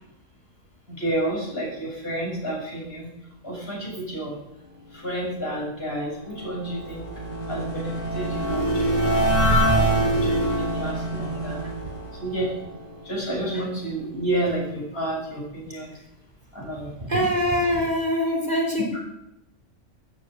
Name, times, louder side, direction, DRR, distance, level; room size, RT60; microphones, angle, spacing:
voice 1, 0.9-3.1 3.4-4.4 4.9-7.1 7.5-11.6 12.2-12.5 13.0-16.0 16.5-17.1 18.9-19.0, right 1 dB, 45° left, -4 dB, 7.7 m, -30 dB
sound 1, 6.0-13.2, right 1 dB, 70° left, 3.5 m, -25 dB
voice 2, 17.1-18.9, equal, 30° right, 0 dB, 3.8 m, -23 dB
14.0 x 9.6 x 9.5 m, 0.84 s
omnidirectional pair, 1.4 m